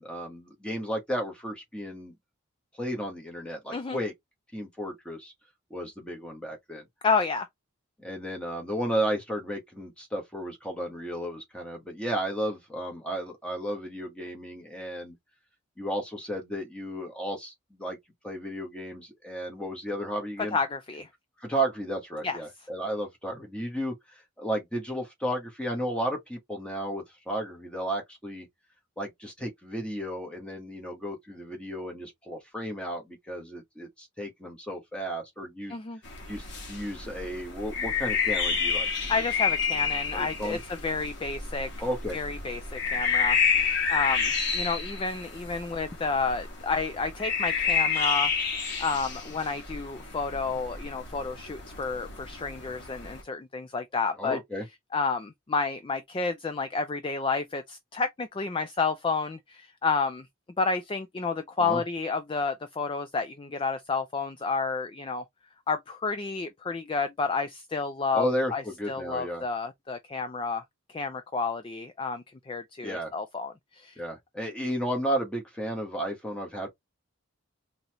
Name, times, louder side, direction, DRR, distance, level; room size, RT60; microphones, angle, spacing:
voice 1, 0.0-2.1 2.8-4.1 4.5-5.3 5.7-6.8 8.0-15.1 15.8-18.0 18.2-20.6 21.4-28.5 29.0-35.8 36.3-38.9 40.1-40.6 41.8-42.2 54.2-54.6 61.6-61.8 68.1-69.4 72.8-73.1 74.0-76.7, equal, 5° left, 1.2 m, -33 dB
voice 2, 7.0-7.5 20.5-21.1 22.2-22.4 35.7-36.0 39.1-41.7 42.1-54.4 54.9-60.3 60.6-65.2 65.7-70.6 70.9-74.0, left 4 dB, 25° left, 0.3 m, -30 dB
sound 1, 36.1-53.2, left 6 dB, 55° left, 1.5 m, -30 dB
4.0 x 2.8 x 3.0 m
head